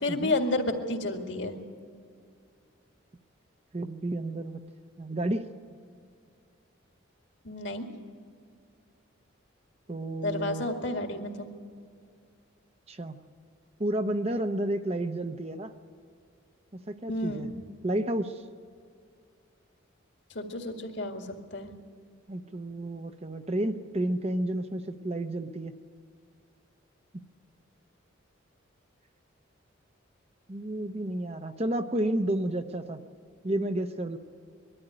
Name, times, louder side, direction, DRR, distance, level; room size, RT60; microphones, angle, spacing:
voice 1, 0.0-1.7 7.4-7.9 10.2-11.5 17.1-17.5 20.3-21.3 21.5-21.7, left 2 dB, 60° left, 4 dB, 2.1 m, -31 dB
voice 2, 3.7-4.6 5.0-5.5 9.9-10.6 12.9-13.2 13.8-15.7 16.9-17.5 17.8-18.4 22.3-25.7 30.5-33.0 33.4-34.2, right 1 dB, 30° right, 8 dB, 0.8 m, -31 dB
22.0 x 13.0 x 10.0 m, 2.3 s
head